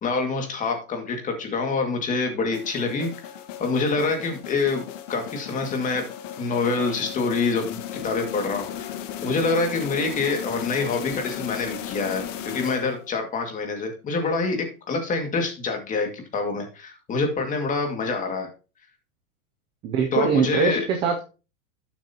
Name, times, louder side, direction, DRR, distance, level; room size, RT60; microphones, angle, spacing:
voice 1, 0.0-3.1 3.6-4.8 5.1-6.0 6.4-9.0 9.2-16.1 16.3-18.5 20.1-20.9, left 4 dB, 20° left, 3 dB, 2.0 m, -26 dB
sound 1, 2.5-13.2, left 10 dB, 60° left, 1.4 m, -36 dB
voice 2, 19.8-21.2, right 6 dB, 15° right, 5 dB, 0.4 m, -22 dB
11.5 x 7.4 x 2.8 m, 0.33 s
supercardioid pair, 155°, 43 cm